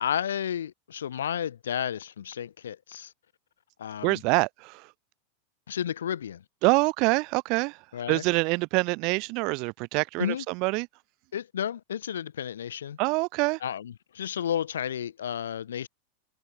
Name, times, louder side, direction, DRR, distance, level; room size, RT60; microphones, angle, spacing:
voice 1, 0.0-3.1 3.8-4.2 5.7-6.4 7.9-8.2 10.2-10.4 11.3-13.0 13.6-15.9, left 9 dB, 65° left, 0.5 m, -32 dB
voice 2, 4.0-4.9 6.6-7.8 8.1-10.9 13.0-13.6, right 28 dB, 45° right, 0.7 m, -25 dB
figure-of-eight pair, 90°, 0 cm